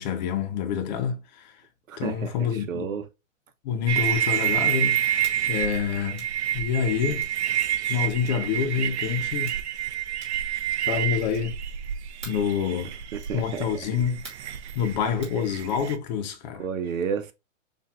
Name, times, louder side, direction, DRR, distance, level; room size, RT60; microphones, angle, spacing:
voice 1, 0.0-1.5 2.0-2.8 3.6-6.2 6.5-7.2 7.9-9.5 10.9-11.6 12.2-12.9 13.3-14.2 14.7-16.6, left 7 dB, 35° left, 0.8 m, -27 dB
voice 2, 1.9-3.0 13.3-13.7 16.6-17.3, right 7 dB, 75° right, 1.0 m, -31 dB
sound 1, 3.9-16.0, right 11 dB, 55° right, 0.6 m, -28 dB
sound 2, 5.2-5.4 6.1-6.4 7.2-7.4 8.2-8.5 9.2-9.6 10.2-10.5 11.3-11.6 12.2-12.5 13.2-13.4 14.2-14.5 15.2-15.4, right 3 dB, 15° right, 2.0 m, -45 dB
7.1 x 2.6 x 2.5 m
hypercardioid pair, 145°, 40 cm